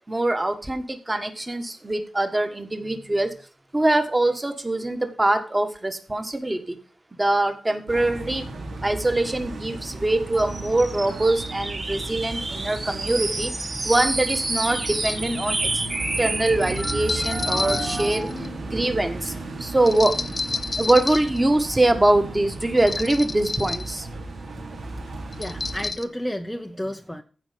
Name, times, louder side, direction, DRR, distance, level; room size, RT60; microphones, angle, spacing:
voice 1, 0.1-3.3 3.7-6.7 7.1-8.4 8.8-13.5 13.8-15.8 16.2-18.3 18.6-20.2 20.8-24.1, right 2 dB, 15° right, 7 dB, 1.5 m, -23 dB
sound 1, 7.9-25.9, right 2 dB, 80° right, 3.9 m, -35 dB
sound 2, 10.3-18.3, right 2 dB, 35° right, 2.5 m, -30 dB
sound 3, 14.9-15.3 16.8-18.6 19.9-21.4 22.8-23.9 25.3-26.0, left 3 dB, 35° left, 0.9 m, -30 dB
voice 2, 25.4-27.2, equal, 5° left, 4 dB, 0.7 m, -31 dB
15.0 x 5.2 x 5.2 m, 0.37 s
wide cardioid pair, 160°, 0 cm